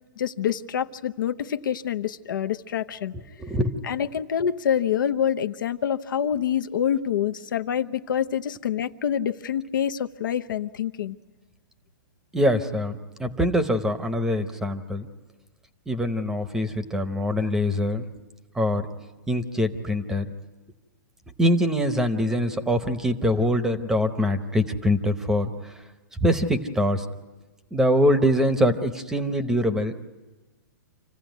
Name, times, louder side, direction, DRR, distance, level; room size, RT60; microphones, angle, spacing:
voice 1, 0.2-3.1 3.8-11.2, left 9 dB, 75° left, 9 dB, 0.8 m, -26 dB
voice 2, 3.4-3.8 12.3-15.1 15.9-18.0 18.6-18.9 19.3-20.3 21.4-25.5 26.2-27.0 27.7-29.9, equal, 5° right, 10 dB, 0.8 m, -23 dB
27.0 x 15.5 x 9.2 m, 1.2 s
hypercardioid pair, 155°, 11 cm